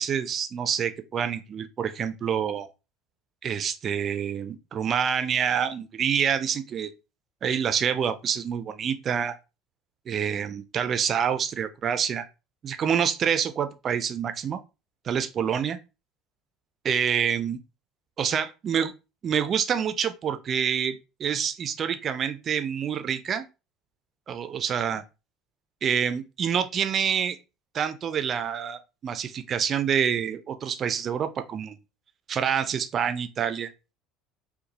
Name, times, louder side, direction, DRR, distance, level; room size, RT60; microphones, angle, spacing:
voice 1, 0.0-2.7 3.4-6.9 7.4-9.4 10.1-12.2 12.6-14.6 15.1-15.8 16.8-17.6 18.2-18.9 19.2-23.5 24.3-25.0 25.8-27.4 27.7-31.8 32.3-33.7, right 8 dB, 35° right, 0.3 m, -27 dB
2.6 x 2.1 x 2.9 m
figure-of-eight pair, 65°, 0 cm